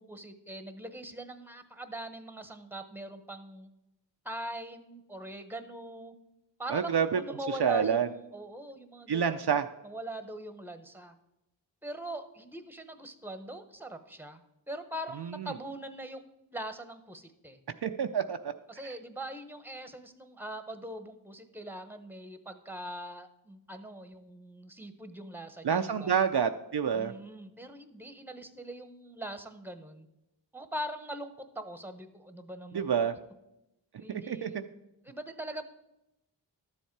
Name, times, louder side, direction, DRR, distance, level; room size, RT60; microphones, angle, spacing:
voice 1, 0.0-3.7 4.2-6.1 6.6-9.6 9.8-11.1 11.8-14.4 14.7-16.3 16.5-17.6 18.7-26.2 26.9-30.1 30.5-33.1 34.0-34.6 35.0-35.7, right 1 dB, 5° right, 9 dB, 1.0 m, -42 dB
voice 2, 6.7-7.2 7.6-8.1 9.1-9.6 17.8-18.4 25.6-27.1 32.7-33.1 34.1-34.5, right 7 dB, 60° right, 7 dB, 0.6 m, -27 dB
12.5 x 7.2 x 4.6 m, 0.90 s
wide cardioid pair, 40°, 45 cm